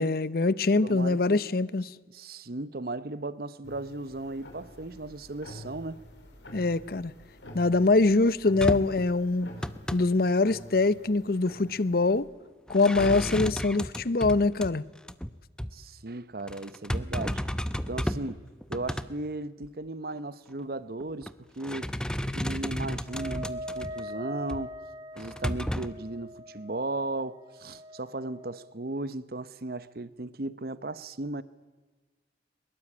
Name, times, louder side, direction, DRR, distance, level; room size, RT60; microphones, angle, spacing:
voice 1, 0.0-1.9 6.5-7.1 7.5-9.5 9.9-12.3 12.7-14.8, left 3 dB, 55° left, 0.7 m, -24 dB
voice 2, 0.8-1.4 2.1-6.0 15.7-17.4 17.9-18.4 18.7-21.9 22.3-24.7 25.2-31.4, right 2 dB, 55° right, 0.9 m, -36 dB
sound 1, 3.6-12.2, left 1 dB, 90° left, 5.3 m, -48 dB
sound 2, 8.6-9.0 9.4-10.0 12.7-14.7 15.1-15.3 15.6-15.7 16.5-18.3 18.6-19.1 19.6-19.7 21.0-21.3 21.6-24.0 24.5-24.6 25.2-25.9, equal, 5° left, 0.7 m, -32 dB
Wind instrument woodwind instrument, 23.0-28.7, equal, 25° right, 1.9 m, -42 dB
22.5 x 22.0 x 8.7 m
head